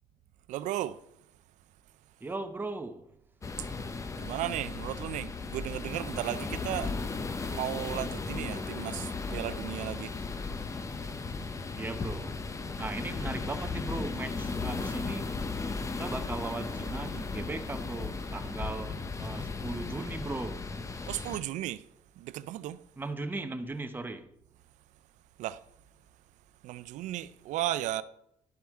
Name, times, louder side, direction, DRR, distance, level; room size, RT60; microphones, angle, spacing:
voice 1, 0.5-1.0 3.6-3.7 4.2-6.9 7.5-10.2 21.1-21.9 22.2-22.8 25.4-25.6 26.6-28.0, right 14 dB, 80° right, 0.4 m, -35 dB
voice 2, 2.2-3.1 11.8-12.4 12.8-15.3 15.9-20.7 23.0-24.3, right 3 dB, 15° right, 0.7 m, -38 dB
sound 1, 3.4-21.4, left 4 dB, 25° left, 0.6 m, -36 dB
11.5 x 4.3 x 3.5 m
cardioid pair, 105°, 12 cm